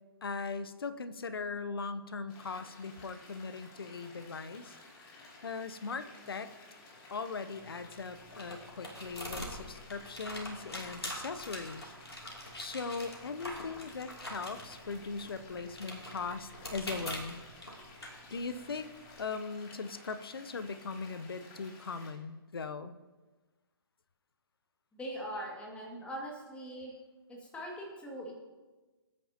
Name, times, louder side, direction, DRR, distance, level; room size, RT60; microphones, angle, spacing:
voice 1, 0.2-6.5 7.1-11.9 12.6-17.4 18.3-18.9 19.2-23.0, left 4 dB, 65° left, 11 dB, 0.9 m, -39 dB
sound 1, 2.3-22.1, left 2 dB, 30° left, 2.8 m, -55 dB
sound 2, 7.5-19.2, equal, 85° left, 2.9 m, -45 dB
voice 2, 24.9-26.9 27.3-28.3, equal, 10° left, -2 dB, 2.2 m, -41 dB
20.5 x 9.6 x 2.9 m, 1.2 s
figure-of-eight pair, 130°, 13 cm